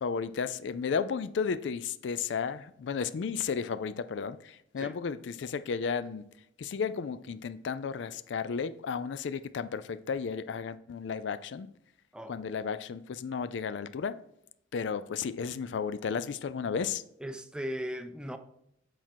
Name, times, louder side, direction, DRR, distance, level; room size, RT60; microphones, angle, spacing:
voice 1, 0.0-6.2 6.6-11.7 12.3-14.2 14.7-17.0, left 6 dB, 70° left, 0.4 m, -33 dB
voice 2, 17.2-18.4, equal, 5° right, 0.4 m, -37 dB
8.0 x 4.3 x 4.5 m
head